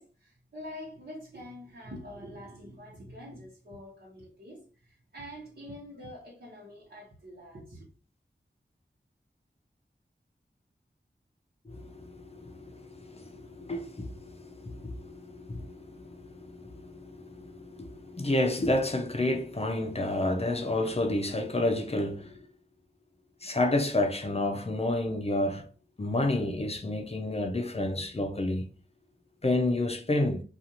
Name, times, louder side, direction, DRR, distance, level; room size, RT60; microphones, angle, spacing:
voice 1, 0.0-7.9, equal, 65° right, 1.0 m, -45 dB
voice 2, 11.7-22.5 23.4-25.7 26.0-28.7 29.4-30.4, left 1 dB, 30° left, 0.5 m, -30 dB
2.5 x 2.4 x 2.8 m
wide cardioid pair, 55°, 20 cm